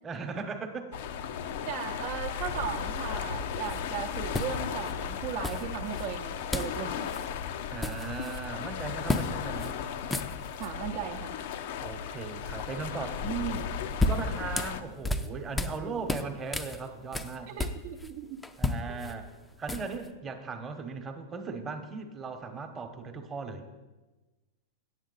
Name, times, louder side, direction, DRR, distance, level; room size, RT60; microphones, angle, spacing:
voice 1, 0.0-1.0 7.7-9.8 11.8-13.7 14.0-17.5 18.6-19.3 19.6-23.7, right 4 dB, 25° right, 6 dB, 1.0 m, -38 dB
sound 1, 0.9-14.8, left 7 dB, 60° left, 0.6 m, -36 dB
voice 2, 1.7-7.1 10.6-11.4 15.8-16.0 17.5-18.4 18.9-19.0, right 8 dB, 50° right, 2 dB, 0.7 m, -37 dB
sound 2, 3.6-3.8 4.3-4.9 5.4-6.1 6.5-6.8 7.1-7.2 7.6-8.4 9.1-9.3 9.6-9.7 10.0-10.7 13.6-15.8 16.1-18.1 18.4-20.1, left 2 dB, 10° left, 0.5 m, -32 dB
9.1 x 8.0 x 4.0 m, 1.2 s
hypercardioid pair, 110°, 0 cm